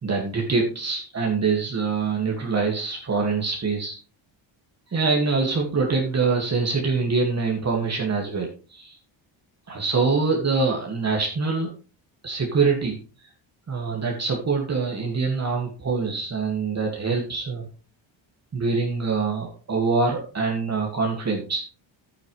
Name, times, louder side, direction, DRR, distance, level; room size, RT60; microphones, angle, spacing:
voice 1, 0.0-4.0 4.9-9.0 9.7-11.7 12.2-13.0 13.7-17.7 18.5-21.6, right 4 dB, 30° right, 0 dB, 2.0 m, -24 dB
11.5 x 9.2 x 3.2 m, 0.36 s
cardioid pair, 150°, 49 cm